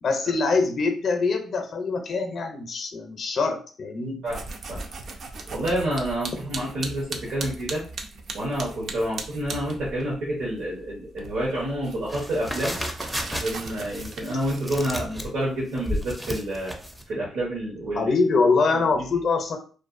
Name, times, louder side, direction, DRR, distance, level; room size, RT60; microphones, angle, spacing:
voice 1, 0.0-4.2 17.9-19.6, left 4 dB, 50° left, 4 dB, 0.5 m, -24 dB
sound 1, 4.3-10.1 10.4-15.0, right 3 dB, 55° right, 0.4 m, -38 dB
voice 2, 5.5-7.8 8.3-12.8 13.3-16.8 17.1-18.1 18.7-19.2, right 1 dB, 75° right, -7 dB, 1.0 m, -29 dB
sound 2, 12.1-17.0, equal, ahead, 0.4 m, -32 dB
2.5 x 2.3 x 2.5 m, 0.40 s
cardioid pair, 90°, 0 cm